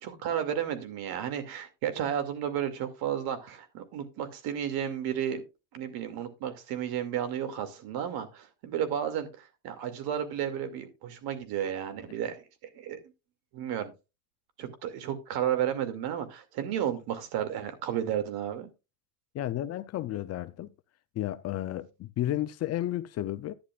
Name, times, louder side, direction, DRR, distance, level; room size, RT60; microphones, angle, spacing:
voice 1, 0.0-5.4 5.7-12.4 12.7-13.0 13.5-13.9 14.6-18.7, right 9 dB, 65° right, 2.4 m, -32 dB
voice 2, 19.3-20.7 21.1-23.5, left 13 dB, 40° left, 0.6 m, -32 dB
11.5 x 10.0 x 2.4 m
cardioid pair, 140°, 41 cm